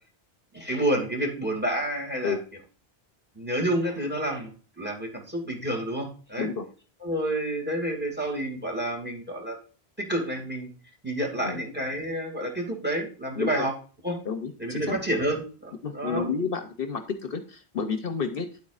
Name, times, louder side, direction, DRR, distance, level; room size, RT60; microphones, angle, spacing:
voice 1, 0.5-2.4 3.4-6.5 7.0-9.6 10.0-10.7 11.0-13.7 14.0-14.2 14.6-16.2, right 1 dB, 10° right, 2 dB, 2.3 m, -29 dB
voice 2, 13.3-13.7 14.2-15.0 15.8-18.5, left 5 dB, 60° left, 8 dB, 0.9 m, -30 dB
10.0 x 8.1 x 2.4 m, 0.40 s
omnidirectional pair, 1.1 m